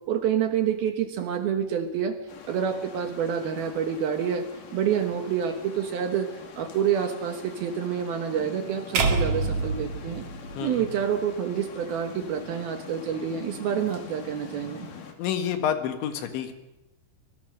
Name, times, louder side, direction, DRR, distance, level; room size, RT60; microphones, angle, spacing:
voice 1, 0.1-2.2 2.5-4.5 4.7-6.3 6.6-10.3 10.6-14.9, right 8 dB, 65° right, 6 dB, 2.7 m, -28 dB
sound 1, 2.3-15.1, left 6 dB, 50° left, 3.3 m, -44 dB
sound 2, 8.9-11.2, right 4 dB, 50° right, 2.7 m, -27 dB
voice 2, 15.2-16.5, left 9 dB, 75° left, 7 dB, 3.9 m, -28 dB
24.5 x 22.5 x 6.4 m, 0.95 s
omnidirectional pair, 5.5 m